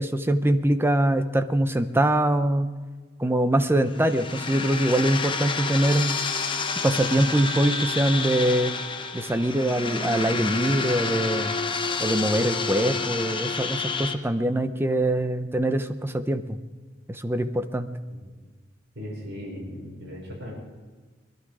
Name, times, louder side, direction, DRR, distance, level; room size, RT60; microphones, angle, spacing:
voice 1, 0.0-2.7 3.2-6.2 6.8-8.7 9.1-11.6 12.0-16.6 17.1-17.9, right 1 dB, 15° right, 9 dB, 0.7 m, -23 dB
sound 1, 3.9-14.1, left 4 dB, 30° left, 0.9 m, -29 dB
voice 2, 18.9-20.5, equal, 75° right, -5 dB, 5.6 m, -37 dB
21.0 x 12.0 x 5.0 m, 1.4 s
head